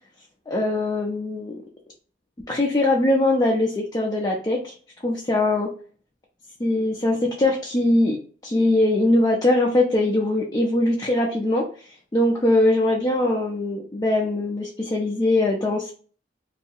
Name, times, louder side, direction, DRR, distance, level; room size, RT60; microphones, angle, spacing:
voice 1, 0.5-1.6 2.5-4.7 5.0-5.7 6.6-8.2 8.4-15.9, left 1 dB, 20° left, -2 dB, 0.4 m, -21 dB
2.7 x 2.3 x 2.7 m, 0.42 s
head